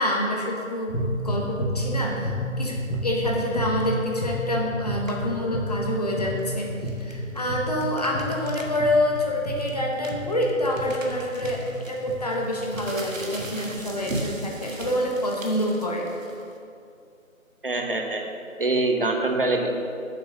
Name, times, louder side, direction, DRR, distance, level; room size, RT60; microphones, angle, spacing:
voice 1, 0.0-6.7 7.0-16.1, left 1 dB, 30° left, -2 dB, 1.0 m, -27 dB
sound 1, 0.9-13.5, equal, 80° left, 1.8 m, -31 dB
sound 2, 4.9-5.3 6.2-8.8 9.1-9.2 9.6-16.6, right 2 dB, 70° right, 1.4 m, -38 dB
voice 2, 17.6-18.2 18.6-19.8, right 2 dB, 40° right, 3 dB, 0.9 m, -24 dB
7.6 x 6.5 x 5.4 m, 2.5 s
figure-of-eight pair, 160°, 41 cm